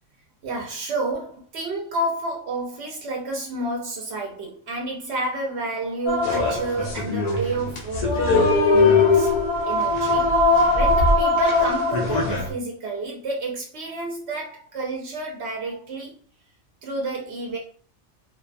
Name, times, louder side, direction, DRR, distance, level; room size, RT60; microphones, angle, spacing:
voice 1, 0.4-9.3 9.7-10.4 10.7-16.2 16.8-17.6, right 2 dB, 65° right, -1 dB, 0.9 m, -30 dB
sound 1, 6.1-12.5, left 3 dB, 65° left, 0.4 m, -20 dB
2.6 x 2.1 x 2.5 m, 0.42 s
omnidirectional pair, 1.3 m